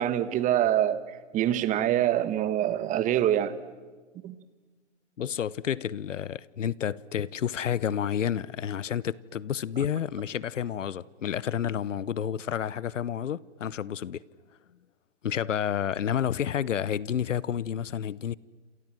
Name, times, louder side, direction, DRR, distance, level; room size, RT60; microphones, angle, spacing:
voice 1, 0.0-3.5 4.2-4.3, right 11 dB, 20° right, 1.3 m, -25 dB
voice 2, 5.2-14.2 15.2-18.4, left 9 dB, 85° left, 0.9 m, -30 dB
28.5 x 27.5 x 7.6 m
hypercardioid pair, 135°, 36 cm